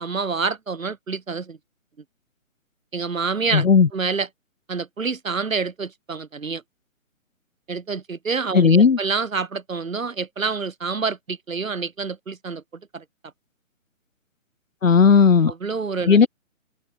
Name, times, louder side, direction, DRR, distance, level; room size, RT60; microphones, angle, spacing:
voice 1, 0.0-1.6 2.9-4.3 4.7-6.6 7.7-12.6 12.9-13.0 15.5-16.3, right 4 dB, 75° right, 5.0 m, -27 dB
voice 2, 3.5-3.9 8.5-9.0 14.8-15.5 16.1-16.3, left 5 dB, 70° left, 2.0 m, -14 dB
hypercardioid pair, 180°, 41 cm